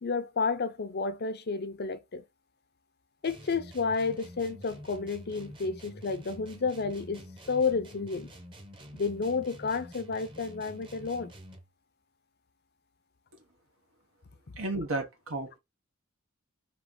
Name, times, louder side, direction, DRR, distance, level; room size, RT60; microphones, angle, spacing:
voice 1, 0.0-2.2 3.2-8.3 8.9-11.3, left 4 dB, 50° left, 0.6 m, -31 dB
sound 1, 3.2-11.7, equal, 25° right, 0.9 m, -48 dB
voice 2, 14.6-15.6, right 2 dB, 80° right, 1.5 m, -33 dB
4.5 x 3.0 x 3.9 m
head